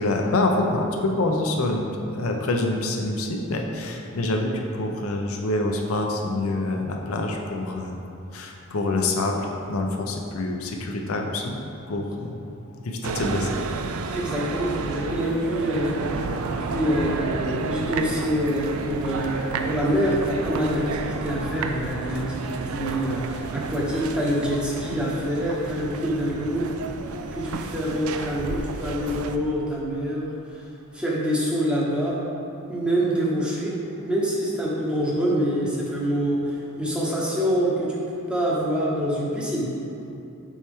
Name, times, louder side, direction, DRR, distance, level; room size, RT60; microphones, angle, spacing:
voice 1, 0.0-1.9 2.1-8.0 8.3-11.5 11.9-12.4 12.8-13.6, left 2 dB, 75° left, 2 dB, 0.6 m, -26 dB
sound 1, 13.0-29.4, right 4 dB, 75° right, 0.4 m, -31 dB
voice 2, 14.1-16.0 16.4-26.7 27.3-30.6 30.9-32.2 32.7-33.7 34.0-38.0 38.3-39.7, equal, 5° right, -6 dB, 0.9 m, -26 dB
7.2 x 4.5 x 3.5 m, 2.7 s
head